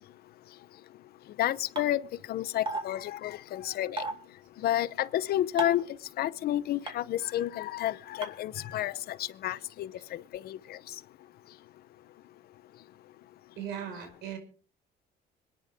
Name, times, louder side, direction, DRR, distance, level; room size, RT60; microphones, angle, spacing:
voice 1, 1.4-2.0 2.3-4.0 4.6-5.8 6.2-10.8, left 13 dB, 65° left, 0.8 m, -30 dB
sound 1, 1.8-1.9 2.7-2.8 4.0-4.1 5.6-5.8 6.9-7.0 8.2-8.3, right 3 dB, 30° right, 3.4 m, -32 dB
voice 2, 13.6-14.4, right 9 dB, 90° right, 5.2 m, -38 dB
26.0 x 10.0 x 3.6 m
cardioid pair, 110°, 17 cm